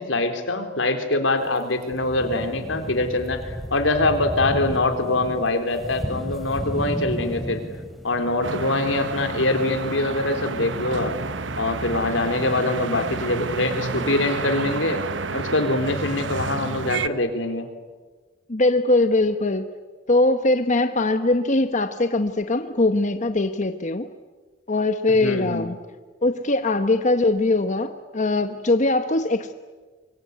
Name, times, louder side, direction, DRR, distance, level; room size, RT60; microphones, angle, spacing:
voice 1, 0.0-7.6 8.0-11.2 11.6-15.0 15.3-17.7 25.2-25.7, left 2 dB, 85° left, 7 dB, 3.8 m, -24 dB
sound 1, 1.5-1.6 1.8-13.9, equal, ahead, 3.5 m, -35 dB
sound 2, 8.4-17.1, right 4 dB, 75° right, 1.1 m, -30 dB
voice 2, 18.5-19.7 20.1-24.1 24.7-25.8 26.2-29.5, left 2 dB, 40° left, 8 dB, 1.1 m, -21 dB
25.5 x 23.0 x 9.6 m, 1.4 s
head